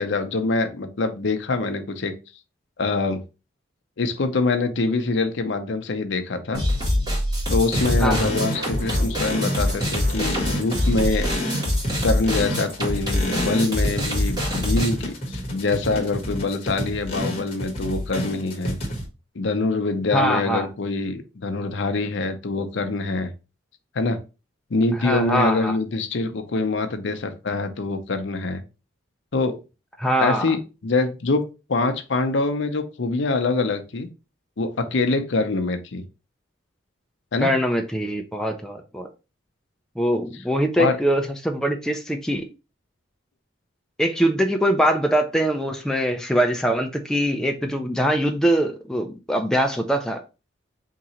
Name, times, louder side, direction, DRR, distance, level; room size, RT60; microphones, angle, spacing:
voice 1, 0.0-2.1 2.8-3.2 4.0-6.6 7.5-11.3 12.0-18.8 19.4-23.3 23.9-24.2 24.7-28.6 29.3-29.6 30.2-31.4 31.7-34.1 34.6-36.0 37.3-37.5 40.8-41.0, left 3 dB, 60° left, 8 dB, 0.6 m, -24 dB
sound 1, 6.5-14.9, left 1 dB, 20° right, 1.5 m, -24 dB
sound 2, 7.7-19.1, equal, 30° left, 1.1 m, -29 dB
sound 3, 7.8-14.2 14.5-14.6 14.9-15.0, right 3 dB, 50° right, 0.6 m, -39 dB
voice 2, 20.1-20.7 25.0-25.8 30.0-30.5 37.4-39.1 40.0-42.5 44.0-50.2, equal, 5° left, 3 dB, 0.4 m, -22 dB
3.7 x 2.8 x 4.2 m, 0.30 s
head